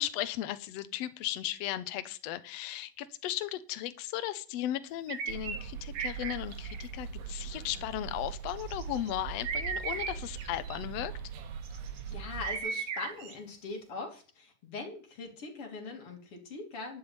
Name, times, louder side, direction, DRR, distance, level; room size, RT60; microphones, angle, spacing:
voice 1, 0.0-11.1, left 13 dB, 70° left, 12 dB, 1.6 m, -36 dB
sound 1, 5.1-5.6 5.9-6.9 8.5-9.1 9.4-10.8 11.6-12.1 12.4-13.3, right 6 dB, 55° right, 2.1 m, -36 dB
sound 2, 5.3-12.6, right 6 dB, 80° right, 3.0 m, -41 dB
voice 2, 12.1-17.0, left 3 dB, 45° left, 2 dB, 3.5 m, -41 dB
12.0 x 7.2 x 8.8 m, 0.40 s
omnidirectional pair, 3.9 m